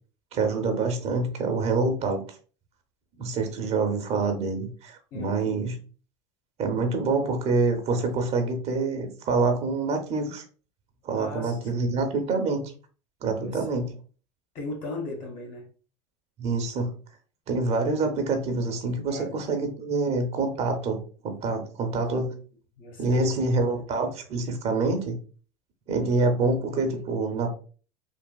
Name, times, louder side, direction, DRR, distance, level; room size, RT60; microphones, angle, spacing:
voice 1, 0.3-2.2 3.2-5.8 6.6-10.4 11.0-12.6 13.2-13.9 16.4-16.9 17.5-22.3 23.0-25.2 25.9-27.5, right 3 dB, 45° right, 6 dB, 0.8 m, -26 dB
voice 2, 5.1-5.6 11.1-12.0 13.4-13.8 14.5-15.7 19.1-19.4 22.3-22.4 22.8-23.3, left 2 dB, 55° left, 1 dB, 1.3 m, -38 dB
3.3 x 2.4 x 2.3 m, 0.39 s
hypercardioid pair, 90°, 16 cm